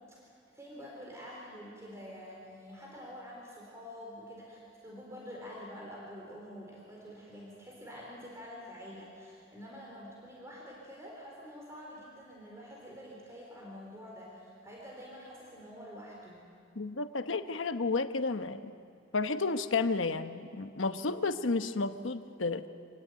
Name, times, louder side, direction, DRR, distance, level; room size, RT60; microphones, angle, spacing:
voice 1, 0.0-16.4, equal, 15° right, -3 dB, 4.0 m, -47 dB
voice 2, 16.8-18.7 19.1-22.6, left 3 dB, 90° left, 9 dB, 1.0 m, -32 dB
26.5 x 17.5 x 9.4 m, 2.5 s
head